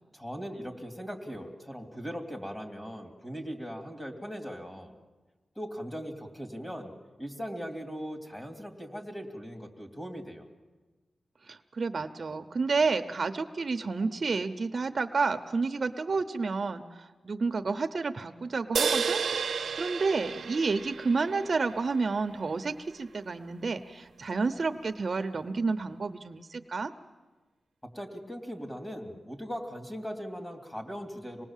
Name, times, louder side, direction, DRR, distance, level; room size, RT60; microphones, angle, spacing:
voice 1, 0.1-4.9 5.6-10.5 27.9-31.5, equal, 15° left, 4 dB, 2.8 m, -39 dB
voice 2, 11.5-19.2 19.5-26.9, right 4 dB, 45° right, 8 dB, 0.7 m, -30 dB
sound 1, 18.7-22.2, right 6 dB, 75° right, 0.7 m, -32 dB
26.5 x 19.5 x 7.4 m, 1.3 s
wide cardioid pair, 130°, 0 cm